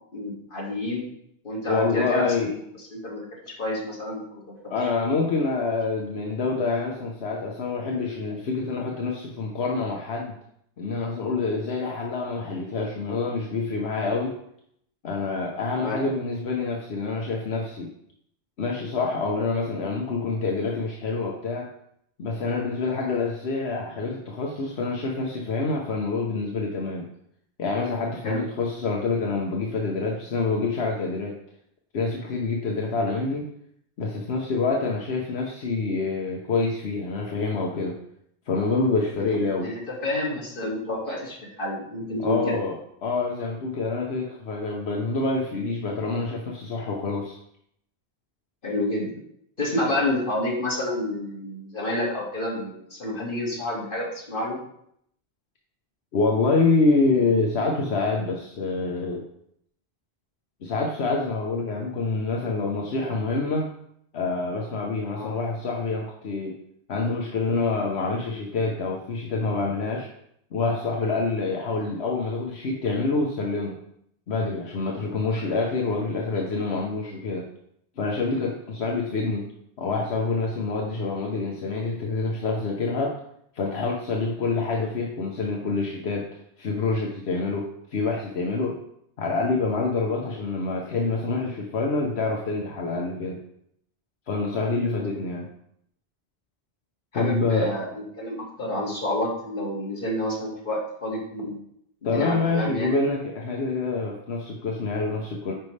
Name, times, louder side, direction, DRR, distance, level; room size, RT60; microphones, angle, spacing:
voice 1, 0.1-1.1 1.4-2.5 2.9-4.4 15.7-16.0 28.2-28.4 39.6-42.5 48.6-49.1 49.6-54.6 65.1-65.3 95.1-95.2 97.1-101.6 102.0-103.0, left 1 dB, 55° left, -4 dB, 2.3 m, -29 dB
voice 2, 1.7-2.5 4.7-10.3 10.8-14.4 15.0-17.9 18.6-21.7 22.2-27.1 27.6-31.4 31.9-33.5 34.0-38.0 38.5-39.7 42.2-47.4 56.1-59.2 60.6-63.7 64.1-66.6 66.9-70.1 70.5-73.8 74.3-77.5 78.0-79.5 79.8-83.2 83.5-86.3 86.6-87.6 87.9-88.8 89.2-93.4 94.3-95.5 97.1-97.7 102.0-105.5, left 3 dB, 80° left, 0 dB, 1.2 m, -26 dB
10.5 x 5.3 x 3.3 m, 0.72 s
omnidirectional pair, 1.1 m